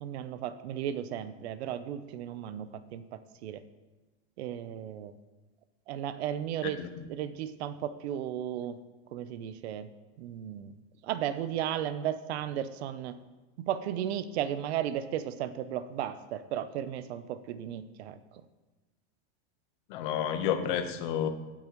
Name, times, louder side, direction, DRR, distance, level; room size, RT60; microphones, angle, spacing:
voice 1, 0.0-3.6 4.4-5.1 5.9-6.8 7.1-8.8 9.1-9.9 10.2-10.7 11.0-13.2 13.6-18.4, right 10 dB, 80° right, 12 dB, 0.8 m, -35 dB
voice 2, 19.9-21.3, left 9 dB, 50° left, 8 dB, 1.1 m, -30 dB
17.0 x 8.7 x 3.1 m, 1.2 s
supercardioid pair, 175°, 32 cm